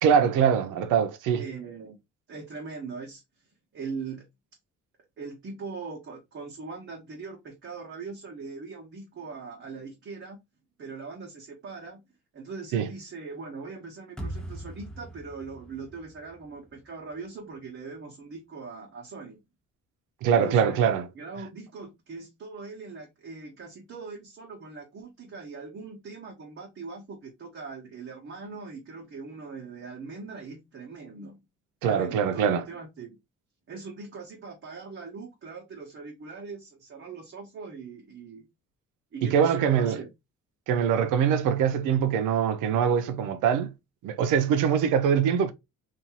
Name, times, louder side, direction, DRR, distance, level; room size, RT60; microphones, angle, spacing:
voice 1, 0.0-1.4 12.7-12.9 20.2-21.1 31.8-32.6 39.2-40.0 40.7-43.7 44.0-45.5, right 7 dB, 90° right, 0.5 m, -23 dB
voice 2, 1.4-2.0 2.3-3.2 3.7-4.3 5.2-10.4 10.8-12.0 12.3-19.4 20.3-20.8 21.1-31.4 31.8-33.2 33.7-38.5 39.1-40.1, right 4 dB, 40° right, 0.8 m, -41 dB
sound 1, 14.2-17.3, right 1 dB, 5° left, 0.6 m, -41 dB
2.6 x 2.3 x 2.8 m
cardioid pair, 90°, 30 cm